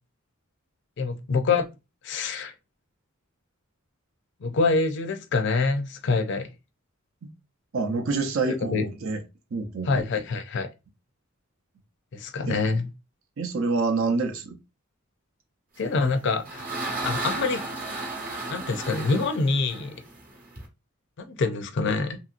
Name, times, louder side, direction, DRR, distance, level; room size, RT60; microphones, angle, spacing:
voice 1, 1.0-1.7 2.0-2.5 4.4-6.5 8.4-8.8 9.8-10.7 12.1-12.9 15.8-16.6 17.0-17.6 18.5-19.9 21.2-22.2, left 4 dB, 60° left, 0.4 m, -25 dB
voice 2, 7.7-9.2 9.5-10.2 12.5-12.6 13.4-14.6, right 3 dB, 70° right, 0.7 m, -27 dB
sound 1, 16.0-20.6, right 2 dB, 45° right, 0.9 m, -34 dB
2.9 x 2.7 x 2.4 m
head